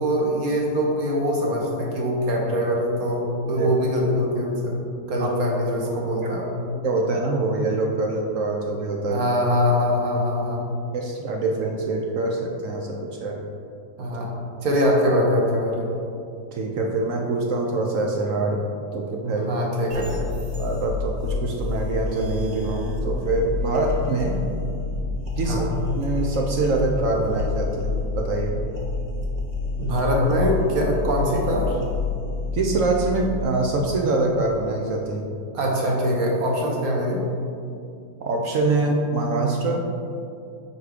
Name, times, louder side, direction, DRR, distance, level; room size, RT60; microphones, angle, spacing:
voice 1, 0.0-4.8 5.1-6.5 9.1-10.6 14.0-14.4 14.6-15.9 19.3-20.2 25.5-25.7 29.8-31.8 35.5-37.2, equal, 55° right, -1 dB, 1.3 m, -23 dB
voice 2, 6.8-9.3 10.9-13.4 16.5-18.6 18.9-19.5 20.6-24.4 25.4-25.7 25.9-28.6 32.5-35.4 38.2-39.8, right 2 dB, 70° right, 1 dB, 0.7 m, -24 dB
sound 1, 19.9-33.4, left 3 dB, 30° right, 0.7 m, -28 dB
4.8 x 4.7 x 4.9 m, 2.5 s
omnidirectional pair, 2.0 m